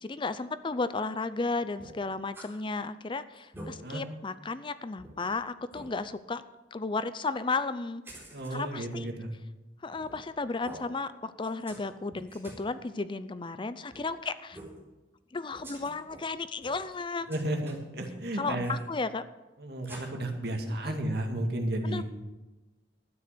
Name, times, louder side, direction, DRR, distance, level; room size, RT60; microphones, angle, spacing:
voice 1, 0.0-6.4 6.7-8.0 8.5-9.1 9.8-14.6 15.3-17.3 18.4-19.2 20.8-21.0 21.8-22.0, left 3 dB, 30° left, 13 dB, 0.5 m, -34 dB
sound 1, 1.8-2.5 2.9-3.0 3.3-3.7 4.3-4.4 5.0-5.1 5.7-5.9 8.0-8.6 9.9-10.3 10.6-10.8 11.4-11.8 12.1-12.6 13.9-14.0 14.5-14.8 15.5-16.2 16.6-16.9 17.3-18.1 18.6-18.8 19.8-20.0, right 1 dB, 15° right, 4.1 m, -47 dB
voice 2, 8.3-9.3 17.3-18.8 19.6-22.0, right 1 dB, 65° right, 3 dB, 2.2 m, -33 dB
12.5 x 9.6 x 6.7 m, 1.1 s
head